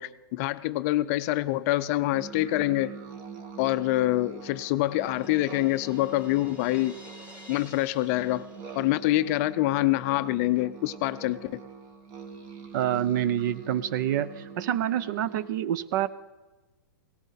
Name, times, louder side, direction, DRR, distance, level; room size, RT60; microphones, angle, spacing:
voice 1, 0.0-2.9 3.6-7.0 7.5-8.5 8.7-11.6, left 16 dB, 40° left, 13 dB, 0.4 m, -26 dB
sound 1, 2.1-15.5, right 6 dB, 35° right, 1.7 m, -44 dB
Crash cymbal, 4.2-9.4, equal, 10° right, 2.9 m, -52 dB
voice 2, 12.7-16.1, right 11 dB, 55° right, 17 dB, 0.7 m, -27 dB
17.5 x 15.0 x 4.1 m, 1.2 s
hypercardioid pair, 135°, 12 cm